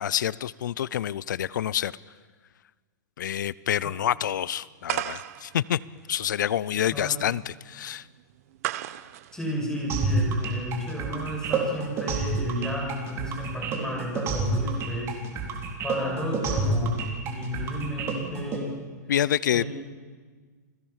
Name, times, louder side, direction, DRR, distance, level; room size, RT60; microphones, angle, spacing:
voice 1, 0.0-1.9 3.2-5.8 6.1-8.0 19.1-19.6, left 10 dB, 80° left, 21 dB, 0.6 m, -27 dB
sound 1, 4.9-10.5, right 14 dB, 55° right, 1.0 m, -36 dB
voice 2, 6.9-7.2 9.3-15.2 15.8-18.8 19.5-19.7, equal, 5° left, 0 dB, 6.6 m, -32 dB
sound 2, 9.9-18.6, right 3 dB, 25° right, 3.9 m, -28 dB
29.5 x 19.0 x 7.4 m, 1.5 s
hypercardioid pair, 150°, 10 cm